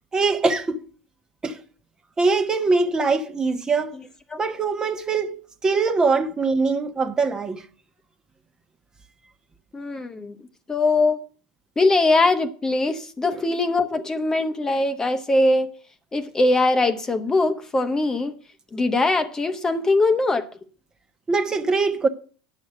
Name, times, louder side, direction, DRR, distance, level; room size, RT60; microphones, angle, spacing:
voice 1, 0.1-0.8 1.4-1.6 2.2-3.9 4.4-7.6 21.3-22.1, right 4 dB, 20° right, 1.1 m, -22 dB
voice 2, 9.7-10.3 10.7-11.2 11.8-15.7 16.1-18.3 18.7-20.5, left 2 dB, 20° left, 1.0 m, -21 dB
9.5 x 6.4 x 7.8 m
hypercardioid pair, 95°, 3 cm